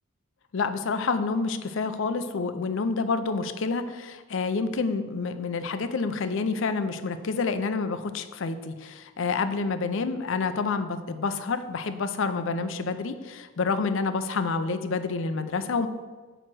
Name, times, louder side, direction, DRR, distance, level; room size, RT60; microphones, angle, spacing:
voice 1, 0.5-15.9, left 4 dB, 60° left, 10 dB, 0.5 m, -28 dB
8.9 x 3.0 x 6.1 m, 1.4 s
head